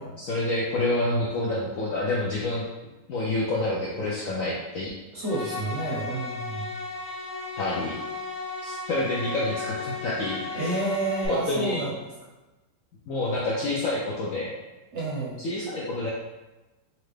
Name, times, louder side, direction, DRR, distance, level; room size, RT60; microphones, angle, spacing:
voice 1, 0.2-2.7 3.1-4.9 7.6-8.0 8.6-10.8 11.3-11.8 13.1-14.5 15.4-16.1, left 2 dB, 70° left, -5 dB, 0.8 m, -28 dB
voice 2, 5.1-6.8 10.5-11.9 14.9-15.5, right 2 dB, 55° right, -6 dB, 0.8 m, -29 dB
sound 1, 5.2-11.3, left 3 dB, 55° left, 1.7 m, -35 dB
4.2 x 2.5 x 3.2 m, 1.1 s
omnidirectional pair, 1.9 m